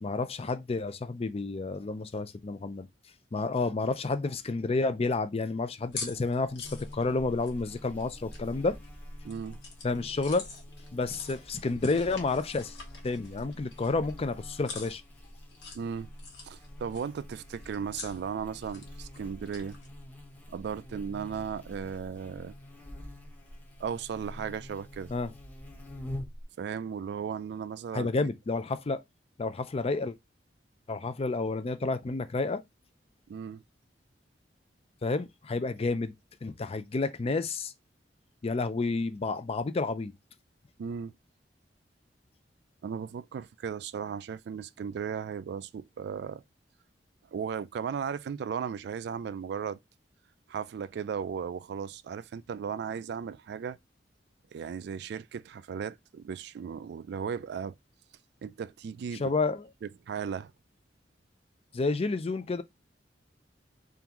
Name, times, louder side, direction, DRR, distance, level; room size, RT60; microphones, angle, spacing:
voice 1, 0.0-2.9 3.3-8.8 9.8-10.5 10.9-12.8 13.0-15.0 25.1-25.3 27.9-29.0 29.4-30.1 30.9-32.6 35.0-36.1 36.4-37.7 38.4-40.1 59.2-59.7 61.7-62.6, left 3 dB, 35° left, 0.4 m, -30 dB
sound 1, 5.8-19.9, left 4 dB, 75° left, 1.2 m, -47 dB
Buzz, 6.6-26.4, left 1 dB, 10° left, 0.8 m, -46 dB
voice 2, 9.2-9.6 15.7-16.1 16.4-19.8 20.5-22.5 23.8-25.1 26.6-28.3 33.3-33.6 40.8-41.1 42.8-46.4 47.3-49.8 50.5-53.8 54.5-57.7 58.4-59.2 60.1-60.5, right 7 dB, 65° right, 0.3 m, -36 dB
3.8 x 3.4 x 2.9 m
head